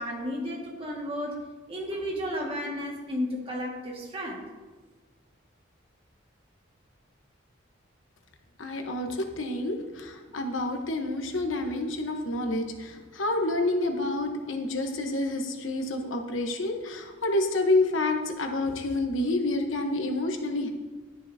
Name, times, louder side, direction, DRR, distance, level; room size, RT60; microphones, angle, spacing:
voice 1, 0.0-1.4 1.7-4.4, equal, 30° right, -2 dB, 1.8 m, -33 dB
voice 2, 8.6-20.7, left 2 dB, 85° left, 4 dB, 1.1 m, -28 dB
12.0 x 10.5 x 2.8 m, 1.4 s
head